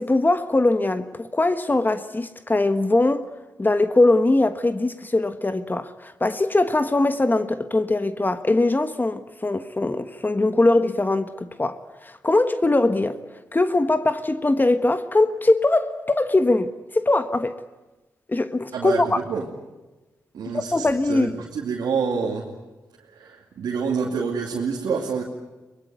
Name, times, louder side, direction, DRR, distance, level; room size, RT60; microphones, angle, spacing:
voice 1, 0.0-3.3 3.6-13.2 13.5-17.5 18.3-19.2 20.5-21.4, left 2 dB, 25° left, 1.3 m, -21 dB
voice 2, 18.7-19.4 20.3-22.5 23.1-25.2, right 5 dB, 80° right, 2.5 m, -27 dB
23.0 x 21.0 x 9.4 m
supercardioid pair, 50°, 7 cm